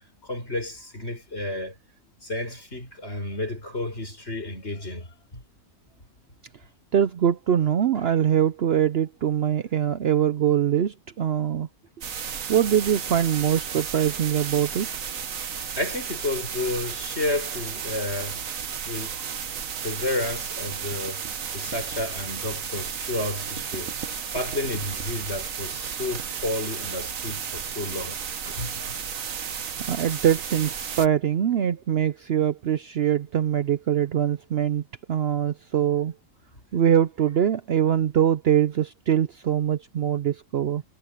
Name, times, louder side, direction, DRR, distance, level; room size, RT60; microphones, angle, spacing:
voice 1, 0.3-1.7 2.2-5.4 15.8-18.4 18.9-19.1 19.8-21.2 21.5-23.9 24.3-28.2 28.4-28.8, left 2 dB, 50° left, 6.5 m, -31 dB
voice 2, 6.9-11.7 12.5-14.9 29.9-34.8 35.1-36.1 36.7-40.8, right 9 dB, 60° right, 0.8 m, -23 dB
sound 1, 12.0-31.1, right 7 dB, 75° right, 1.6 m, -33 dB
omnidirectional pair, 1.4 m